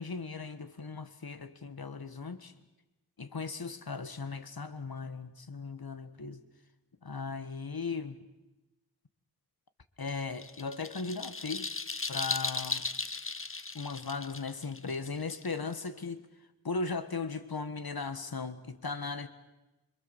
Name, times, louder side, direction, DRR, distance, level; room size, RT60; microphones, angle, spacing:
voice 1, 0.0-2.5 3.2-6.4 7.0-8.2 10.0-11.7 12.1-12.9 13.7-16.3 16.6-19.3, left 4 dB, 60° left, 11 dB, 1.6 m, -37 dB
sound 1, 10.1-15.9, left 4 dB, 30° left, 1.0 m, -37 dB
26.5 x 24.0 x 7.3 m, 1.0 s
wide cardioid pair, 70°, 40 cm